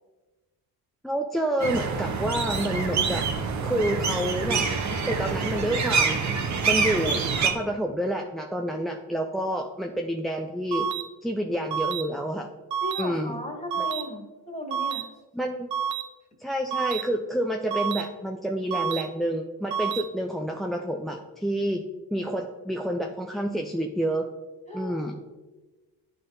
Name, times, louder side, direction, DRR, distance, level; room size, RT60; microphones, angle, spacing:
voice 1, 1.0-3.3 3.6-4.7 5.1-6.2 6.7-10.9 11.2-12.5 13.0-13.4 13.8-13.9 15.3-15.7 16.4-21.8 22.1-24.3 24.7-25.1, right 1 dB, ahead, 2 dB, 0.3 m, -28 dB
sound 1, 1.6-7.5, right 5 dB, 45° right, 0.9 m, -26 dB
sound 2, 10.7-11.0 11.7-12.0 12.7-13.0 13.7-14.0 14.7-15.0 15.7-16.0 16.7-17.0 17.7-18.0 18.7-19.0 19.7-20.0, right 8 dB, 80° right, 0.7 m, -28 dB
voice 2, 12.8-15.1 24.7-25.0, left 1 dB, 15° left, -1 dB, 1.8 m, -36 dB
9.8 x 3.7 x 2.6 m, 1.2 s
supercardioid pair, 70°, 39 cm